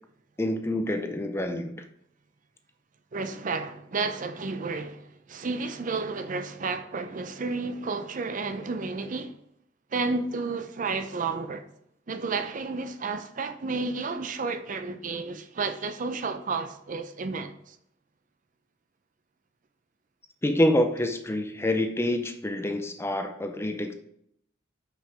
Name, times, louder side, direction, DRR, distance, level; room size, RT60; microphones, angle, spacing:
voice 1, 0.4-1.8 20.4-23.9, left 1 dB, 15° left, 0.5 m, -27 dB
voice 2, 3.1-9.4 9.9-11.6 12.1-17.8, right 4 dB, 45° right, 0.5 m, -31 dB
5.9 x 5.5 x 4.8 m
head